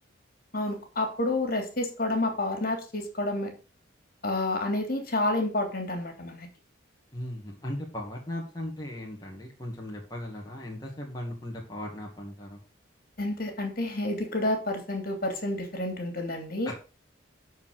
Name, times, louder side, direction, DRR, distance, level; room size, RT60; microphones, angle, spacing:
voice 1, 0.5-3.5 4.2-6.5 13.2-16.7, left 2 dB, 50° left, 4 dB, 3.1 m, -29 dB
voice 2, 7.1-12.6 16.6-16.7, left 1 dB, 20° left, -2 dB, 2.3 m, -37 dB
12.5 x 4.8 x 6.7 m, 0.34 s
head